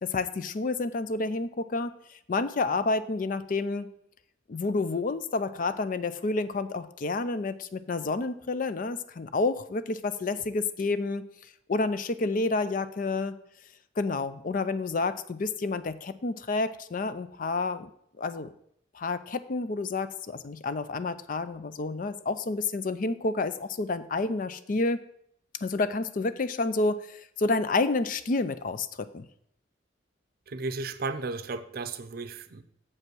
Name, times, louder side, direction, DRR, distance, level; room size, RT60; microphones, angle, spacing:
voice 1, 0.0-3.9 4.5-11.2 11.7-13.4 14.0-17.9 18.2-18.5 18.9-25.0 25.6-29.3, left 3 dB, 45° left, 13 dB, 0.4 m, -29 dB
voice 2, 30.5-32.6, right 3 dB, 55° right, 11 dB, 0.6 m, -34 dB
7.2 x 5.4 x 6.1 m, 0.71 s
head